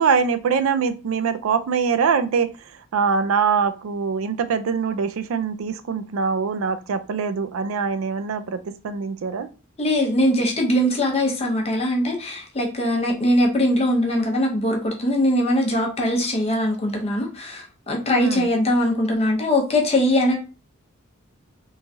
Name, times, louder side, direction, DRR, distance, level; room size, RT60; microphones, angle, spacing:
voice 1, 0.0-2.5 2.9-9.5 18.2-18.5, right 5 dB, 80° right, 0.4 m, -23 dB
voice 2, 9.8-20.4, left 1 dB, 30° left, 0.6 m, -21 dB
3.1 x 2.3 x 2.6 m
head